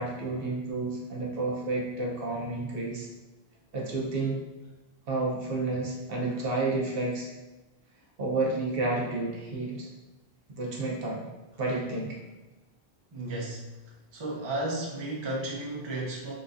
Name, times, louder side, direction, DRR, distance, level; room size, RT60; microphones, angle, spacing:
voice 1, 0.0-3.1 3.7-4.4 5.1-7.3 8.2-9.9 10.5-11.2 11.6-12.1, right 2 dB, 70° right, -3 dB, 0.9 m, -30 dB
voice 2, 13.1-13.7 14.1-16.3, right 2 dB, 35° right, -3 dB, 0.6 m, -33 dB
3.9 x 2.3 x 2.6 m, 1.1 s
omnidirectional pair, 1.0 m